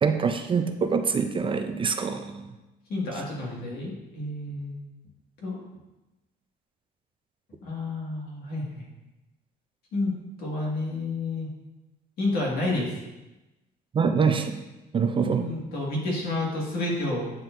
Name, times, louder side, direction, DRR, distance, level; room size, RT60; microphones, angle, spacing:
voice 1, 0.0-2.5 13.9-14.6 14.9-15.5, right 5 dB, 30° right, 7 dB, 0.4 m, -25 dB
voice 2, 2.9-4.8 5.4-5.6 7.6-8.9 9.9-10.1 10.4-11.5 12.2-13.0 15.4-17.3, left 2 dB, 65° left, -3 dB, 1.9 m, -30 dB
9.0 x 4.3 x 2.6 m, 1.0 s
cardioid pair, 110°, 17 cm